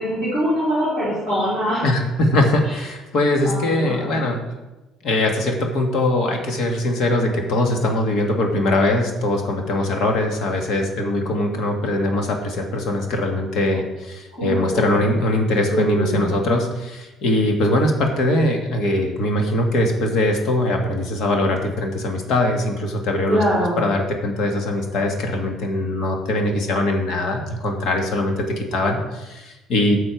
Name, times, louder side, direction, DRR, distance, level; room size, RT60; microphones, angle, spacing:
voice 1, 0.0-1.8 3.4-4.2 14.3-15.0 15.7-16.3 23.3-23.8, equal, 20° left, -11 dB, 4.1 m, -23 dB
voice 2, 1.8-4.4 5.0-23.4 23.8-30.0, left 1 dB, 50° left, 2 dB, 1.7 m, -21 dB
12.0 x 6.8 x 4.6 m, 1.1 s
cardioid pair, 180°, 0 cm